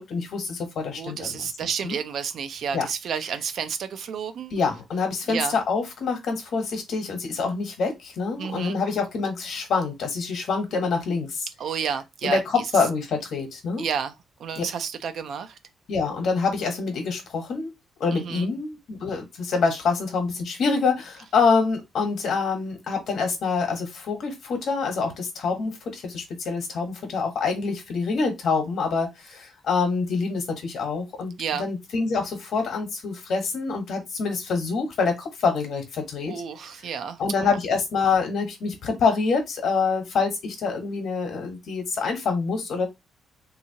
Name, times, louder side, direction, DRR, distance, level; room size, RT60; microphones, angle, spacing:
voice 1, 0.0-1.4 1.8-2.0 2.7-2.8 4.5-11.5 12.2-13.9 14.6-14.7 15.9-17.7 18.0-36.3 37.2-42.9, left 4 dB, 55° left, 1.2 m, -26 dB
voice 2, 1.0-4.5 5.3-5.6 8.4-8.8 11.6-12.6 13.8-15.6 18.1-18.5 31.4-31.7 36.2-37.6, right 7 dB, 50° right, 0.4 m, -31 dB
3.5 x 2.9 x 2.8 m
cardioid pair, 175°, 0 cm